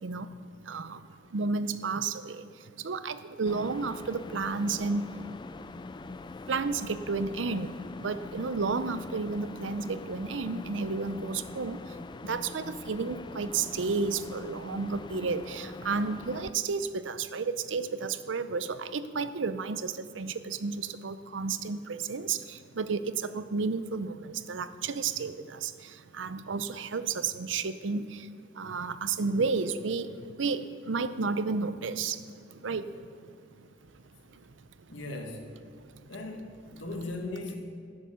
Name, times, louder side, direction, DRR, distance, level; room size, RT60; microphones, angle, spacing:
voice 1, 0.0-5.1 6.5-33.3 33.6-33.7 33.9-34.0 34.3-35.0 35.8-36.2, right 4 dB, 80° right, 12 dB, 0.6 m, -32 dB
sound 1, 3.5-16.5, left 3 dB, 25° left, 0.3 m, -43 dB
voice 2, 34.9-35.5 36.1-37.6, left 2 dB, 85° left, 2 dB, 1.6 m, -38 dB
12.5 x 8.3 x 6.3 m, 2.3 s
head